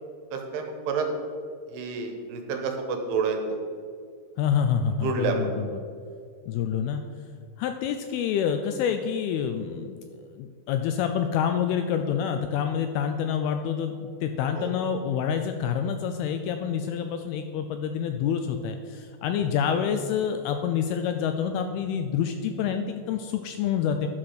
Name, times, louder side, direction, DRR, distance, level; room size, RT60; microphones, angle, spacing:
voice 1, 0.3-1.1 1.7-3.6 5.0-5.5 14.6-14.7 17.1-17.2 19.4-19.5, right 5 dB, 80° right, 4 dB, 3.0 m, -29 dB
voice 2, 4.4-5.7 6.5-7.0 7.6-24.1, left 8 dB, 85° left, 7 dB, 2.3 m, -27 dB
11.5 x 6.0 x 4.9 m, 2.3 s
omnidirectional pair, 4.8 m